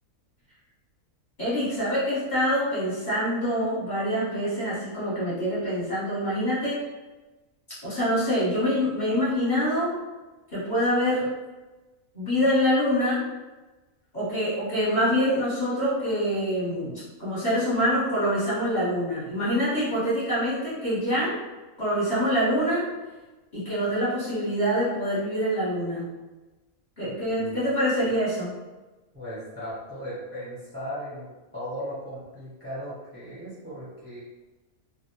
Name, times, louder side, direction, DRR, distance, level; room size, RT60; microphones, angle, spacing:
voice 1, 1.4-6.8 7.8-10.0 10.5-11.3 12.1-13.2 14.1-21.4 21.8-22.8 23.5-26.1 27.0-28.5, equal, 35° left, -11 dB, 0.9 m, -25 dB
voice 2, 29.1-34.2, equal, 10° right, -9 dB, 0.6 m, -37 dB
2.3 x 2.0 x 2.9 m, 1.1 s
omnidirectional pair, 1.5 m